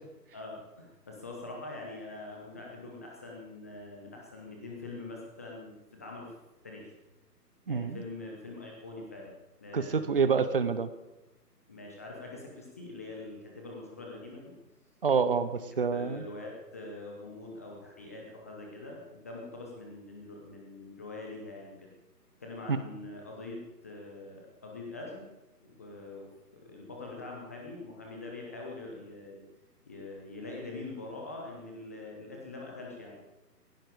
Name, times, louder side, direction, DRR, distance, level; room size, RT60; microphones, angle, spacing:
voice 1, 0.3-5.7 6.0-6.3 6.6-6.9 7.7-9.3 9.6-10.3 11.7-14.5 15.7-21.9 22.4-25.3 25.6-29.4 29.8-33.2, left 2 dB, 10° left, -1 dB, 0.8 m, -44 dB
voice 2, 7.7-8.0 9.7-10.9 15.0-16.2 22.7-22.8, right 5 dB, 35° right, 13 dB, 0.8 m, -27 dB
16.0 x 16.0 x 5.0 m, 1.0 s
figure-of-eight pair, 140°, 49 cm